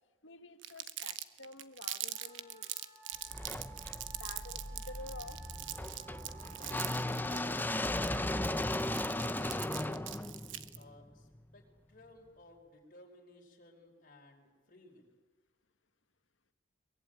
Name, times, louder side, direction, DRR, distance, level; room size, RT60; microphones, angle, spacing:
voice 1, 0.2-2.7 4.1-5.4, left 2 dB, 80° left, 9 dB, 1.6 m, -50 dB
Crumpling crinkling, 0.6-10.8, right 13 dB, 80° right, 1.2 m, -42 dB
Wind instrument woodwind instrument, 2.1-8.4, right 8 dB, 20° right, 7.1 m, -55 dB
sound 1, 3.3-11.4, left 1 dB, 10° left, 0.7 m, -37 dB
voice 2, 10.7-15.1, left 2 dB, 45° left, 1 dB, 5.0 m, -58 dB
23.0 x 22.0 x 9.0 m, 1.3 s
head